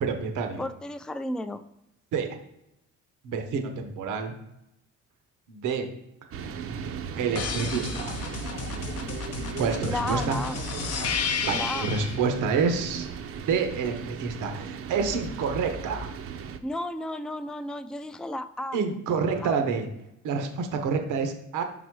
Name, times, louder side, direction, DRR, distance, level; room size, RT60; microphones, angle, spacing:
voice 1, 0.0-0.7 2.1-2.4 3.2-4.3 5.5-5.9 7.2-8.1 9.6-10.4 10.9-13.1 13.5-16.1 18.7-19.9 20.2-21.6, right 5 dB, 85° right, 6 dB, 1.0 m, -28 dB
voice 2, 0.6-1.6 9.8-10.6 11.5-11.9 16.6-18.8 19.4-19.6, left 1 dB, 5° left, 11 dB, 0.3 m, -33 dB
sound 1, 6.3-16.6, right 7 dB, 50° right, 0.6 m, -37 dB
sound 2, 7.4-12.2 15.0-16.0, left 6 dB, 55° left, 0.8 m, -33 dB
5.3 x 4.0 x 4.7 m, 0.85 s
cardioid pair, 90°, 30 cm